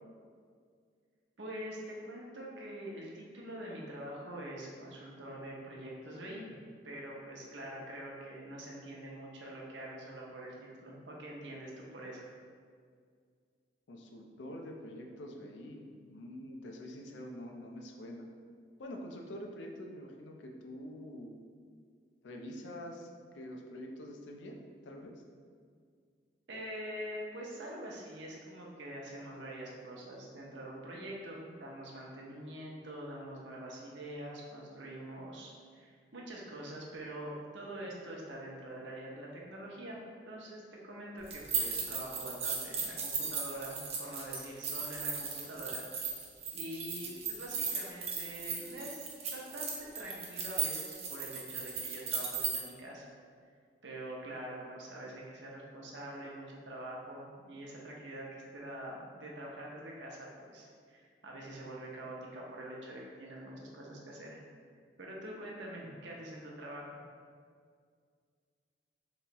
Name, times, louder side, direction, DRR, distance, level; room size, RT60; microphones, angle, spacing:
voice 1, 1.4-6.6 6.8-12.3 26.5-40.0 40.3-46.0 46.5-53.1 53.8-64.4 65.0-67.0, right 1 dB, 80° right, -2 dB, 0.7 m, -45 dB
voice 2, 13.9-18.3 18.8-21.3 22.2-24.6 24.8-25.1, equal, 85° left, 2 dB, 0.4 m, -46 dB
sound 1, 41.3-52.6, right 5 dB, 35° right, 0.4 m, -36 dB
3.4 x 3.0 x 2.9 m, 2.1 s
head